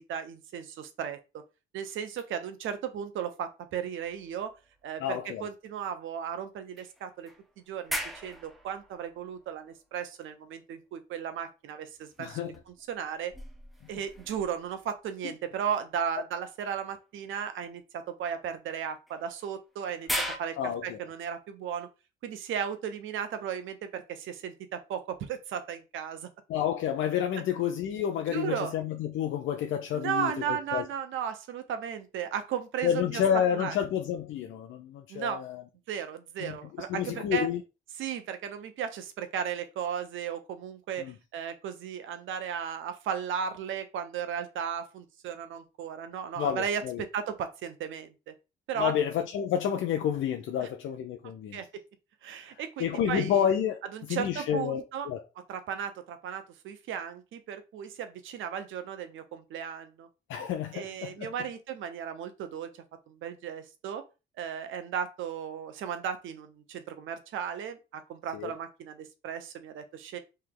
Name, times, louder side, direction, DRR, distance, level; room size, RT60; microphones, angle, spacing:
voice 1, 0.0-1.4 1.7-4.5 4.8-7.3 7.6-12.4 12.7-13.3 13.9-21.9 22.2-26.3 28.3-28.7 29.9-33.2 33.6-33.8 35.1-35.4 35.9-37.5 38.0-48.3 48.7-49.0 50.6-50.7 51.2-51.8 52.2-53.4 53.9-55.1 55.4-60.1 60.7-62.7 63.1-64.0 64.4-70.2, right 8 dB, 80° right, 0.8 m, -35 dB
sound 1, 4.0-5.3 5.7-5.8 6.8-10.2 12.0-15.1 16.8-17.0 19.1-20.4, equal, ahead, 0.8 m, -40 dB
voice 2, 5.0-5.4 12.2-12.6 20.6-21.0 26.5-30.8 32.8-35.6 36.4-36.6 36.9-37.6 41.0-41.1 46.4-47.0 48.8-51.6 52.8-53.8 54.1-55.2 60.3-61.3 68.3-68.5, left 9 dB, 75° left, 0.6 m, -29 dB
3.3 x 2.8 x 3.7 m
cardioid pair, 90°, 20 cm